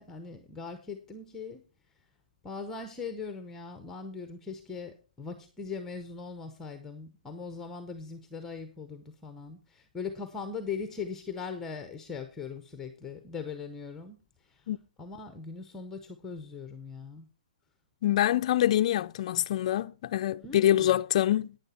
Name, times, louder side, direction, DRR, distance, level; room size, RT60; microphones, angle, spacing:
voice 1, 0.0-1.6 2.4-14.7 15.0-17.3 20.4-21.0, left 5 dB, 10° left, 0.8 m, -40 dB
voice 2, 18.0-21.6, left 12 dB, 45° left, 0.4 m, -25 dB
11.0 x 9.3 x 4.2 m
hypercardioid pair, 160°, 5 cm